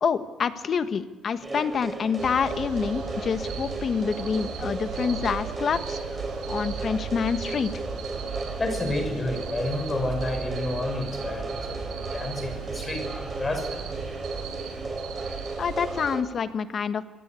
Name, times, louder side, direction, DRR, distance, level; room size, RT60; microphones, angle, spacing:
voice 1, 0.0-6.2 6.5-7.7 15.6-17.0, left 6 dB, 55° left, 10 dB, 1.5 m, -27 dB
sound 1, 1.4-16.2, right 2 dB, 25° right, 3.6 m, -35 dB
sound 2, 2.2-16.1, right 6 dB, 85° right, 6.0 m, -37 dB
voice 2, 8.6-13.8, left 2 dB, 30° left, 6 dB, 6.2 m, -30 dB
23.5 x 17.0 x 8.5 m, 1.2 s
cardioid pair, 90°, 0 cm